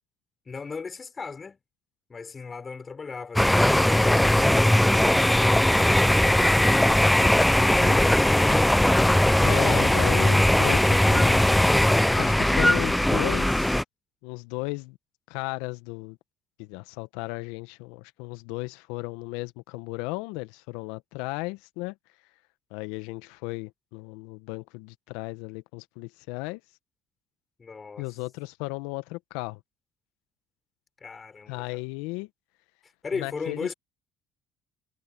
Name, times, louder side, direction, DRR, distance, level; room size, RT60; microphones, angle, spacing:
voice 1, 0.5-1.6 2.1-6.6 7.9-8.8 27.6-28.0 31.0-31.8 33.0-33.7, left 5 dB, 30° left, 4.6 m, -37 dB
sound 1, 3.4-13.8, left 1 dB, 5° left, 0.4 m, -20 dB
voice 2, 9.4-11.4 12.2-13.8 14.2-15.0 15.3-16.2 16.6-21.9 22.7-26.6 28.0-29.6 31.5-32.3 33.1-33.7, left 24 dB, 75° left, 1.4 m, -35 dB
hypercardioid pair, 60°, 0 cm